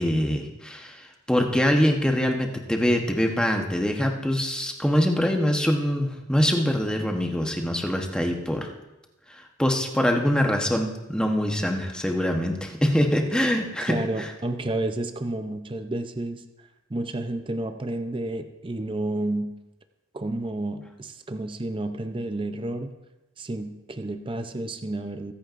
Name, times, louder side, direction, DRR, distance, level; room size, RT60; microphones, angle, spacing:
voice 1, 0.0-8.7 9.6-14.0, equal, 5° left, 2 dB, 1.0 m, -24 dB
voice 2, 13.8-19.5 20.1-22.9 23.4-25.3, right 2 dB, 25° right, 8 dB, 0.6 m, -31 dB
23.5 x 8.5 x 2.6 m, 1.0 s
head